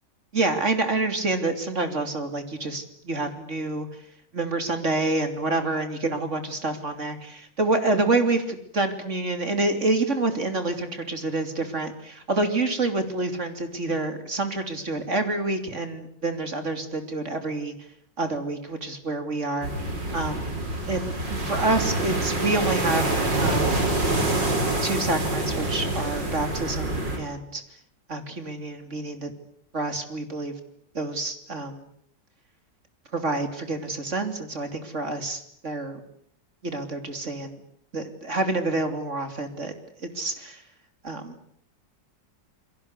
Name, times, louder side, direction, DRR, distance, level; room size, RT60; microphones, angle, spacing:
voice 1, 0.3-3.9 4.3-17.7 18.2-19.7 20.1-20.5 20.9-23.8 24.8-27.6 28.1-29.3 29.7-30.5 31.0-31.8 33.1-36.0 36.6-37.6 37.9-39.7 40.0-40.6 41.0-41.4, right 2 dB, 40° right, 7 dB, 3.4 m, -27 dB
sound 1, 19.6-27.2, right 2 dB, 80° right, 6.0 m, -26 dB
29.0 x 22.5 x 8.3 m, 0.67 s
omnidirectional pair, 1.9 m